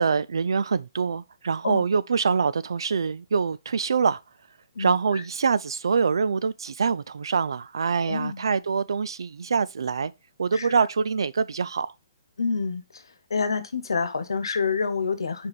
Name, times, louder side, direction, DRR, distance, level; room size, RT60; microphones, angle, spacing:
voice 1, 0.0-4.2 4.8-10.1 10.4-11.9, right 5 dB, 80° right, 0.5 m, -25 dB
voice 2, 8.1-8.4 10.5-10.7 12.4-12.8 13.3-15.5, left 5 dB, 85° left, 1.1 m, -27 dB
5.0 x 4.7 x 5.3 m
hypercardioid pair, 140°, 2 cm